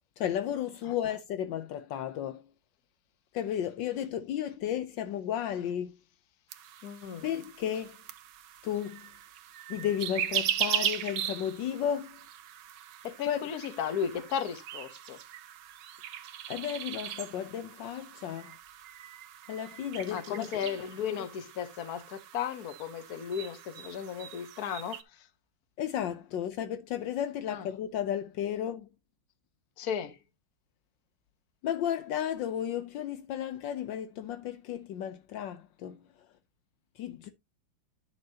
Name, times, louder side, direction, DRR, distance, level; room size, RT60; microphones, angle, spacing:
voice 1, 0.2-2.4 3.3-6.0 7.2-8.0 8.6-9.1 9.7-12.2 13.3-13.5 16.5-18.5 19.5-20.4 25.8-28.9 31.6-36.0 37.0-37.3, left 10 dB, 75° left, 1.4 m, -33 dB
sound 1, 6.5-25.0, right 10 dB, 70° right, 1.4 m, -39 dB
voice 2, 6.8-7.3 13.0-15.2 20.1-25.3 27.5-27.7 29.8-30.2, left 8 dB, 55° left, 1.4 m, -35 dB
10.0 x 6.5 x 2.8 m
omnidirectional pair, 2.1 m